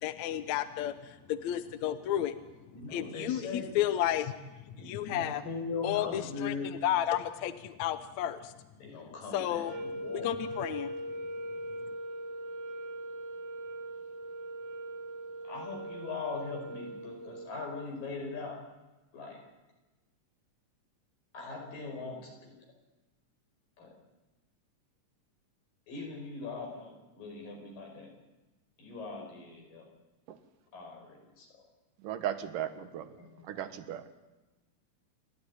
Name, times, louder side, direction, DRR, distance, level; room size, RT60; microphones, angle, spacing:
voice 1, 0.0-2.4 2.9-4.3 4.7-5.4 5.8-8.5 9.3-9.8 10.1-10.9, left 11 dB, 70° left, 12 dB, 2.0 m, -32 dB
voice 2, 2.7-3.7 4.7-6.7 8.8-10.3 15.5-18.6 19.1-19.4 21.3-22.6 23.8-23.9 25.9-28.1 28.8-29.8 30.7-31.5 33.2-33.6, left 4 dB, 85° left, 2 dB, 6.8 m, -40 dB
sound 1, 9.6-17.8, right 1 dB, 60° right, 3.8 m, -40 dB
voice 3, 32.0-33.1 33.5-34.0, right 10 dB, 80° right, 11 dB, 3.0 m, -36 dB
28.5 x 12.5 x 9.9 m, 1.1 s
omnidirectional pair, 3.8 m